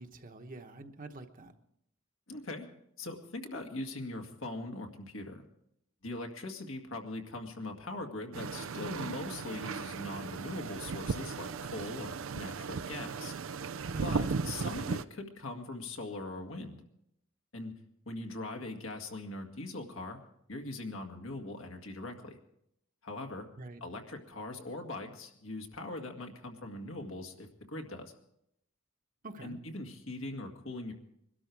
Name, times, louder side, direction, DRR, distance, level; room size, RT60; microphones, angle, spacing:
voice 1, 0.0-1.5 13.9-14.2 23.6-23.8 29.2-29.6, right 2 dB, 40° right, 6 dB, 1.1 m, -45 dB
voice 2, 2.3-2.7 3.0-5.4 6.0-13.3 14.0-16.8 17.5-17.7 18.1-20.2 20.5-22.4 23.0-23.5 23.8-28.1 29.4-30.9, left 2 dB, 80° left, 3 dB, 2.0 m, -41 dB
sound 1, 8.3-15.0, right 5 dB, 85° right, 0.5 m, -36 dB
21.5 x 12.5 x 4.7 m, 0.76 s
head